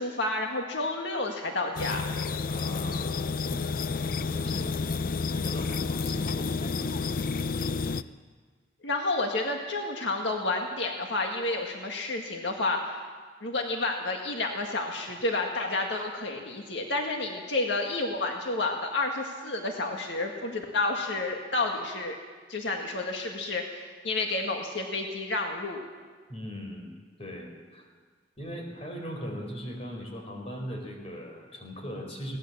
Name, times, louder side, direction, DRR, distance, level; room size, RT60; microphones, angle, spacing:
voice 1, 0.0-2.0 8.8-13.0 13.4-22.2 22.5-25.9, left 2 dB, 80° left, 2 dB, 1.8 m, -30 dB
sound 1, 1.8-8.0, left 4 dB, 50° left, 0.5 m, -30 dB
voice 2, 2.5-4.8 5.3-7.9 26.3-27.9 28.4-32.4, equal, 35° left, 2 dB, 4.3 m, -40 dB
21.5 x 17.5 x 7.3 m, 1.5 s
head